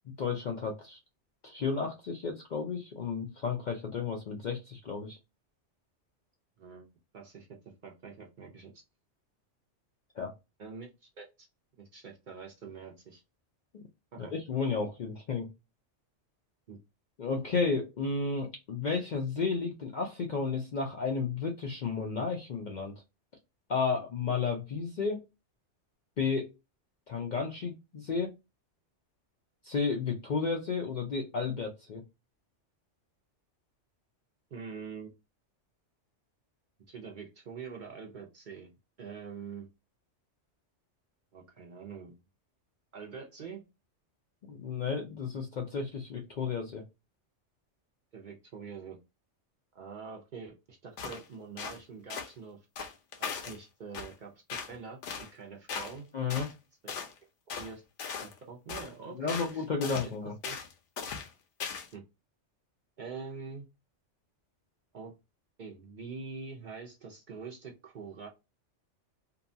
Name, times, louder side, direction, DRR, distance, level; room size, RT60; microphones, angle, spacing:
voice 1, 0.2-1.0 1.4-5.2 10.2-10.3 13.7-13.8 14.2-15.5 17.2-22.9 23.7-25.2 26.2-26.5 27.1-28.3 29.6-32.0 44.5-46.8 56.1-56.5 59.2-60.3, left 5 dB, 60° left, 1 dB, 0.5 m, -32 dB
voice 2, 7.1-7.5 7.8-8.8 10.6-11.5 11.8-13.2 14.1-14.3 16.7-16.8 34.5-35.1 36.9-38.7 39.0-39.7 41.3-42.2 42.9-43.6 48.1-49.0 49.7-52.7 53.2-54.4 54.7-56.1 56.8-56.9 57.6-57.8 58.2-59.7 60.0-60.1 60.4-60.6 61.9-62.0 63.0-63.7 64.9-65.1 65.6-68.3, right 5 dB, 55° right, 1 dB, 0.6 m, -45 dB
sound 1, 51.0-51.2 51.6-51.8 52.1-52.3 52.8-53.6 53.9-54.1 54.5-54.7 55.0-55.3 55.7-56.0 56.3-56.5 56.9-57.1 57.5-57.7 58.0-58.4 58.7-58.9 59.3-59.5 59.8-60.1 60.4-60.7 61.0-61.3 61.6-61.9, left 6 dB, 85° left, 0.9 m, -38 dB
2.7 x 2.2 x 2.5 m, 0.24 s
omnidirectional pair, 1.2 m